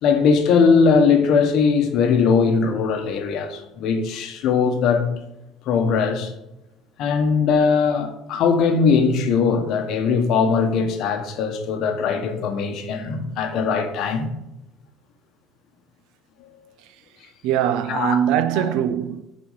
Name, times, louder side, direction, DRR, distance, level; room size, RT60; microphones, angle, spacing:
voice 1, 0.0-5.1 5.6-6.3 7.0-14.3 17.9-18.2 18.5-18.7, left 5 dB, 50° left, 1.0 m, -20 dB
voice 2, 17.4-19.2, right 9 dB, 70° right, 0.6 m, -21 dB
9.3 x 4.2 x 4.9 m
cardioid pair, 175°, 0 cm